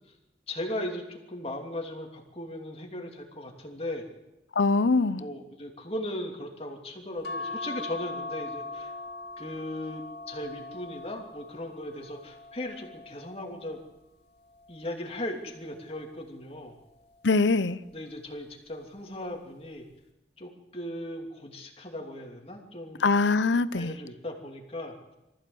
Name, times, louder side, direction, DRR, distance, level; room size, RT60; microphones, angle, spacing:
voice 1, 0.5-4.0 5.2-8.9 9.4-13.8 14.7-16.8 17.9-19.9 20.4-23.1 23.7-25.2, left 1 dB, 35° left, 2 dB, 2.9 m, -37 dB
voice 2, 4.6-5.2 17.2-17.8 23.0-23.9, left 3 dB, 90° left, 16 dB, 0.8 m, -23 dB
sound 1, 7.2-13.9 14.5-15.9 17.1-17.6 17.9-18.0, left 2 dB, 65° left, 2.4 m, -41 dB
24.0 x 14.5 x 7.9 m, 0.97 s
head